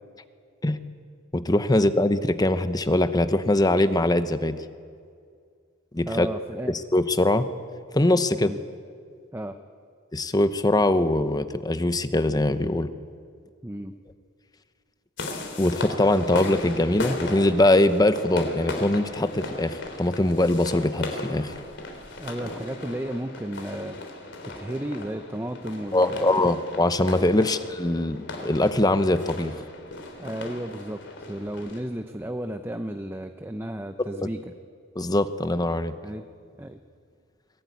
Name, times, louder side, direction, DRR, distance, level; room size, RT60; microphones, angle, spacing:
voice 1, 1.3-4.6 5.9-6.3 6.7-7.5 7.9-8.5 10.1-12.9 15.6-21.6 25.9-29.5 35.0-35.9, left 1 dB, 20° left, 11 dB, 0.8 m, -22 dB
voice 2, 6.1-6.7 8.4-8.6 9.3-9.6 13.6-13.9 22.2-24.0 24.4-26.3 27.3-27.5 30.2-31.0 31.3-34.5 36.0-36.3 36.6-36.8, right 1 dB, 10° right, 7 dB, 0.7 m, -33 dB
sound 1, 15.2-31.8, left 2 dB, 60° left, 3.5 m, -37 dB
23.0 x 17.5 x 9.5 m, 2.2 s
head